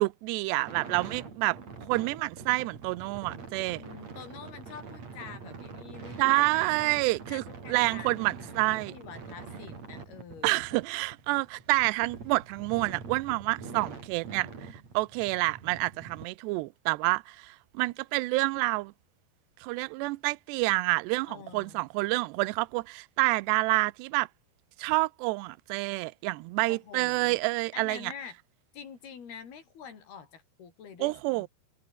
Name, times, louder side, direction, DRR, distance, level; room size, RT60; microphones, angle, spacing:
voice 1, 0.0-1.6 1.9-3.8 6.2-7.4 7.7-8.9 10.4-18.9 19.6-24.3 24.8-28.1 31.0-31.5, right 23 dB, 85° right, 2.8 m, -28 dB
sound 1, 0.7-16.3, right 5 dB, 40° right, 5.3 m, -44 dB
voice 2, 3.8-8.5 8.9-10.6 21.3-21.8 26.7-27.4 27.7-28.4 28.7-31.5, left 7 dB, 65° left, 5.8 m, -46 dB
omnidirectional pair, 5.0 m